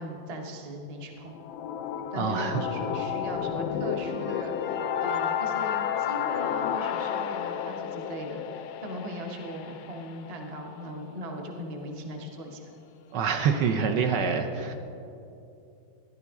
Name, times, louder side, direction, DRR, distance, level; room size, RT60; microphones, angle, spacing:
voice 1, 0.0-1.4 2.1-12.7, equal, 30° right, 2 dB, 0.7 m, -38 dB
sound 1, 1.2-11.1, left 9 dB, 75° left, 0.9 m, -31 dB
voice 2, 2.1-2.6 13.1-14.7, right 6 dB, 70° right, 5 dB, 1.2 m, -26 dB
13.5 x 10.5 x 3.6 m, 2.7 s
omnidirectional pair, 2.1 m